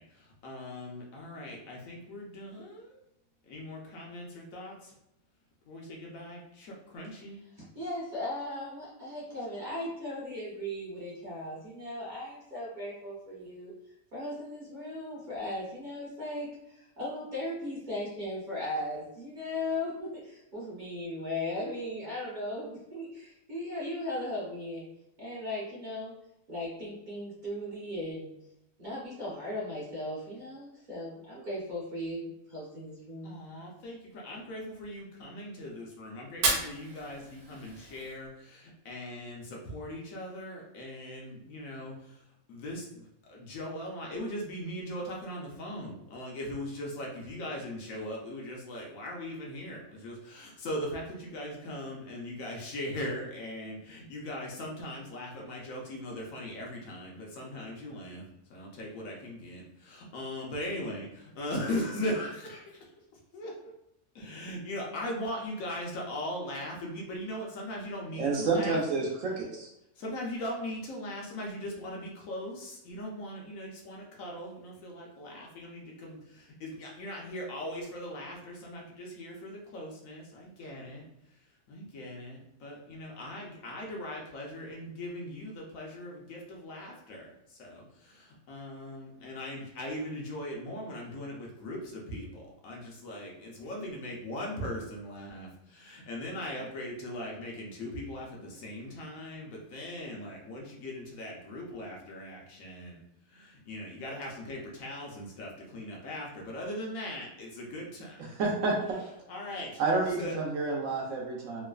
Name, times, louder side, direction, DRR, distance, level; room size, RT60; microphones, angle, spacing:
voice 1, 0.0-3.0 3.5-4.9 5.7-7.4 33.2-42.2 42.5-62.9 63.3-63.7 64.1-68.8 70.0-81.0 81.7-103.0 103.3-108.2 109.3-109.8 110.2-110.4, left 1 dB, 70° left, -1 dB, 1.0 m, -39 dB
voice 2, 7.6-13.7 14.1-24.8 25.2-26.2 26.5-28.3 28.8-33.4, left 1 dB, 40° right, -7 dB, 0.8 m, -37 dB
Fire, 36.3-38.3, right 3 dB, 90° right, 1.1 m, -33 dB
voice 3, 68.2-69.7 108.4-108.8 109.8-111.6, right 3 dB, 65° right, -2 dB, 1.0 m, -29 dB
3.1 x 2.0 x 2.3 m, 0.82 s
omnidirectional pair, 1.5 m